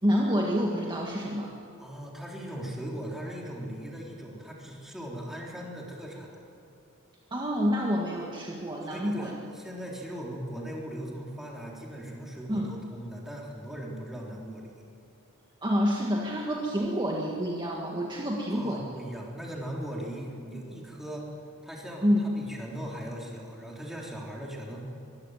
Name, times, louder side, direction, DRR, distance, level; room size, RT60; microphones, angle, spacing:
voice 1, 0.0-1.5 7.3-9.3 12.5-12.7 15.6-18.9 22.0-22.2, equal, 20° right, -2 dB, 1.8 m, -28 dB
voice 2, 1.8-6.4 8.8-14.7 18.5-21.3 21.6-22.1 22.4-24.8, right 1 dB, ahead, -3 dB, 3.6 m, -39 dB
23.0 x 14.5 x 9.2 m, 2.7 s
head